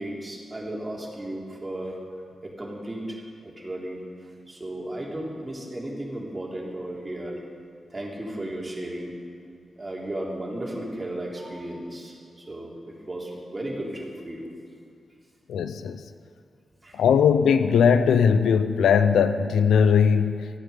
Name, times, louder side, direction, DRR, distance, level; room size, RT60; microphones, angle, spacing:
voice 1, 0.0-2.0 2.4-4.0 4.5-7.4 7.9-9.2 9.8-12.1 12.5-14.5 16.8-17.0, right 1 dB, 30° right, -2 dB, 3.4 m, -34 dB
voice 2, 15.5-16.0 16.9-20.6, left 7 dB, 85° left, 11 dB, 0.5 m, -19 dB
14.0 x 9.0 x 6.9 m, 2.3 s
supercardioid pair, 45°, 0 cm